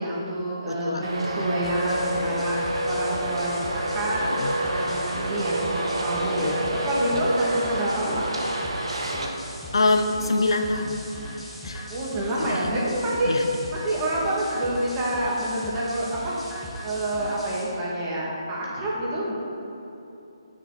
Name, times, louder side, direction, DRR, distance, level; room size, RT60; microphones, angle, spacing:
voice 1, 0.0-8.4 11.9-13.3 13.7-16.4 16.8-19.3, right 1 dB, 20° right, -6 dB, 1.8 m, -28 dB
voice 2, 0.7-1.5 4.3-4.5 6.4-6.6 7.1-7.3 9.7-11.1 11.6-11.9 12.4-12.8 13.3-13.4, left 2 dB, 70° left, 6 dB, 0.6 m, -26 dB
Traffic noise roadway noise, 1.0-9.3, right 1 dB, 85° right, 1.1 m, -28 dB
sound 1, 1.6-17.6, equal, 5° left, 1.1 m, -39 dB
8.6 x 6.5 x 4.0 m, 2.9 s
figure-of-eight pair, 155°, 3 cm